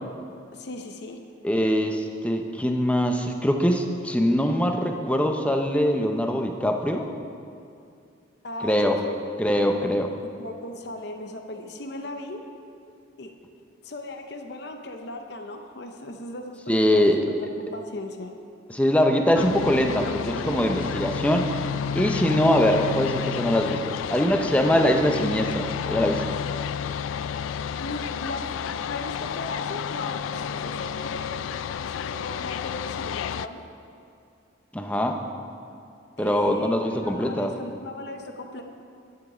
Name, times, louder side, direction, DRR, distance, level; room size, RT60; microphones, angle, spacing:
voice 1, 0.5-1.2 8.4-9.2 10.2-12.4 13.2-13.3 13.8-17.0 17.4-18.3 27.8-28.5 28.8-31.4 31.8-33.7 36.2-38.6, left 2 dB, 60° left, 5 dB, 0.8 m, -37 dB
voice 2, 1.4-7.1 8.6-9.0 9.4-10.1 16.7-17.2 18.7-21.5 21.9-26.2 34.7-35.2 36.2-37.5, equal, 5° left, 4 dB, 0.6 m, -23 dB
sound 1, 19.3-33.5, left 7 dB, 90° left, 0.3 m, -31 dB
11.0 x 9.7 x 4.9 m, 2.5 s
head